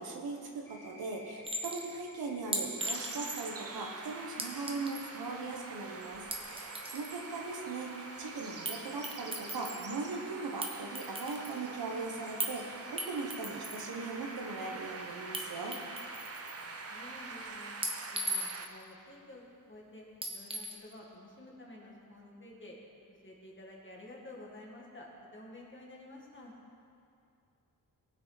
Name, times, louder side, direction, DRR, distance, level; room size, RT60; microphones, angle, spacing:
voice 1, 0.0-6.2 6.5-15.8, right 3 dB, 75° right, 1 dB, 1.4 m, -39 dB
sound 1, 0.6-17.5, left 1 dB, 5° left, 1.8 m, -54 dB
Chink clink, 1.4-1.9 2.5-3.6 4.4-5.1 6.1-7.1 8.6-8.8 9.0-9.9 10.6-11.6 12.4-12.6 13.0-13.8 15.3-15.4 15.7-16.6 17.8-18.8 20.2-20.8, right 1 dB, 15° right, 1.1 m, -38 dB
sound 2, 2.8-18.7, right 4 dB, 40° right, 0.7 m, -45 dB
voice 2, 16.6-17.8 18.1-22.8 23.1-26.5, left 1 dB, 30° left, -3 dB, 2.0 m, -51 dB
19.5 x 6.5 x 4.1 m, 2.5 s
wide cardioid pair, 140°, 37 cm